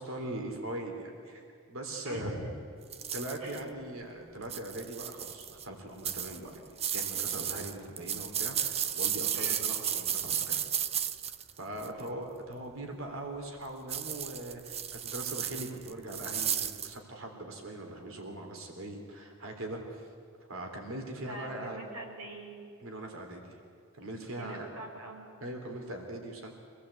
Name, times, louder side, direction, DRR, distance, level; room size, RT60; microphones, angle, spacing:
voice 1, 0.0-2.4 3.1-6.6 6.9-10.6 11.6-20.1 20.5-21.8 22.8-23.6 23.9-24.7 25.4-26.5, right 1 dB, 65° right, 3 dB, 3.5 m, -41 dB
voice 2, 2.1-2.5 3.4-3.6 9.3-9.7 11.8-12.0 21.1-22.6 24.4-25.3, right 1 dB, 85° right, 2 dB, 5.3 m, -43 dB
sound 1, 2.9-3.6 4.4-5.7 6.0-12.0 13.9-16.9, right 9 dB, 30° right, 0.6 m, -34 dB
26.5 x 19.0 x 8.5 m, 2.5 s
head